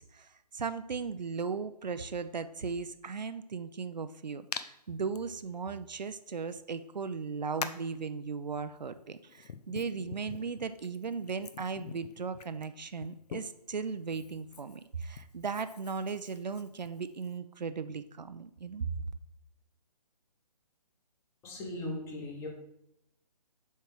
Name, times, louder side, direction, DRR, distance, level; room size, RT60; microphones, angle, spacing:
voice 1, 0.0-19.1, right 5 dB, 90° right, 11 dB, 0.6 m, -37 dB
Hands, 4.5-4.7 5.1-5.2 6.5-6.6 7.6-7.9 8.8-13.7 14.1-17.4, left 6 dB, 65° left, 0.6 m, -44 dB
voice 2, 21.4-22.5, left 1 dB, 10° left, 1 dB, 1.1 m, -38 dB
7.4 x 3.5 x 6.0 m, 0.82 s
figure-of-eight pair, 145°, 21 cm